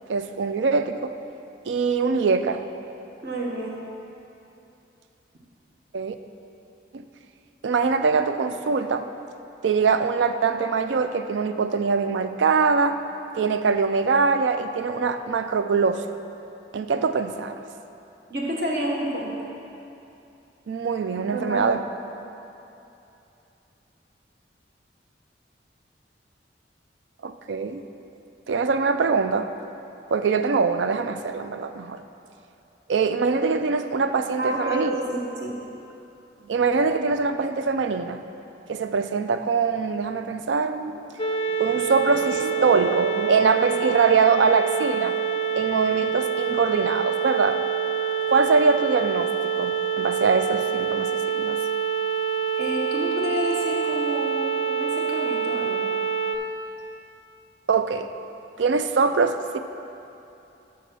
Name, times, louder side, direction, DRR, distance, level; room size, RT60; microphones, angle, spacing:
voice 1, 0.1-1.1 1.7-2.6 5.9-6.2 6.9-7.0 7.6-9.1 9.6-13.0 13.3-16.0 16.7-17.6 20.7-21.8 27.2-27.8 28.5-29.5 30.1-32.0 32.9-34.9 36.5-38.2 38.7-41.0 41.6-45.1 45.6-47.6 48.3-49.3 49.6-51.6 57.7-58.1 58.6-59.6, right 5 dB, 85° right, 9 dB, 0.4 m, -23 dB
voice 2, 3.2-3.8 18.3-19.3 21.3-21.7 34.4-35.5 52.6-55.8, right 1 dB, 60° right, -2 dB, 1.3 m, -29 dB
sound 1, 41.2-56.4, right 7 dB, 30° left, 0.4 m, -26 dB
7.1 x 5.9 x 6.1 m, 2.9 s
head